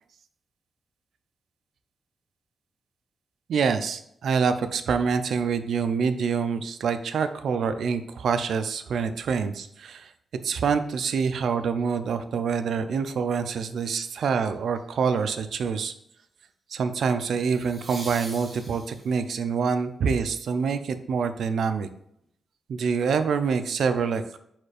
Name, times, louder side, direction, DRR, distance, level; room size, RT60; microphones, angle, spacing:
voice 1, 3.5-10.1 10.4-15.9 16.7-21.9 22.7-24.4, right 6 dB, 70° right, 10 dB, 0.4 m, -26 dB
sound 1, 14.4-14.8 17.4-19.3 22.2-22.3, right 1 dB, 30° right, 1.9 m, -42 dB
4.3 x 2.4 x 4.8 m, 0.73 s
wide cardioid pair, 135°, 0 cm